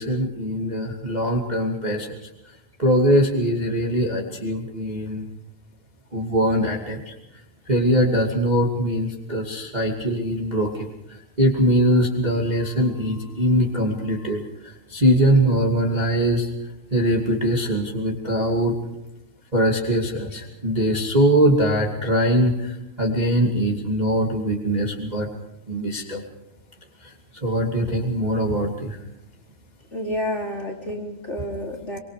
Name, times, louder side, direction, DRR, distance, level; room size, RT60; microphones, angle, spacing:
voice 1, 0.0-5.3 6.1-7.1 7.7-16.5 16.9-18.7 19.5-25.3 25.7-26.2 27.0-29.0, equal, 15° right, 0 dB, 2.2 m, -22 dB
voice 2, 29.9-32.0, left 1 dB, 25° left, 0 dB, 3.2 m, -29 dB
25.5 x 24.5 x 5.0 m, 0.89 s
omnidirectional pair, 3.3 m